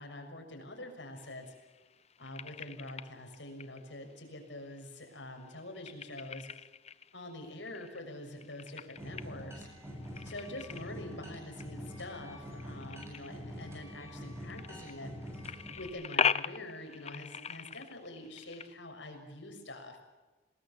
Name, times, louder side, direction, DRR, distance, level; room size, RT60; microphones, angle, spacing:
voice 1, 0.0-1.5 2.2-6.5 7.1-9.7 10.2-15.1 15.8-20.0, left 1 dB, 80° left, 4 dB, 6.6 m, -45 dB
sound 1, 1.2-18.7, left 7 dB, 35° left, 0.7 m, -41 dB
sound 2, 9.0-15.9, equal, 15° right, 7.8 m, -45 dB
27.0 x 20.0 x 7.7 m, 1.2 s
head